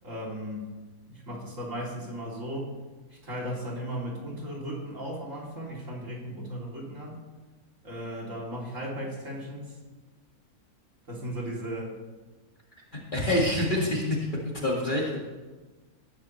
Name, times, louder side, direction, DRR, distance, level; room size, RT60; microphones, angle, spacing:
voice 1, 0.0-0.6 1.1-2.7 3.1-7.2 7.8-9.8 11.1-12.0, equal, 55° right, -3 dB, 3.4 m, -36 dB
voice 2, 13.1-14.3 14.6-15.2, left 1 dB, 30° left, -3 dB, 2.1 m, -26 dB
18.5 x 10.5 x 3.2 m, 1.3 s
omnidirectional pair, 1.6 m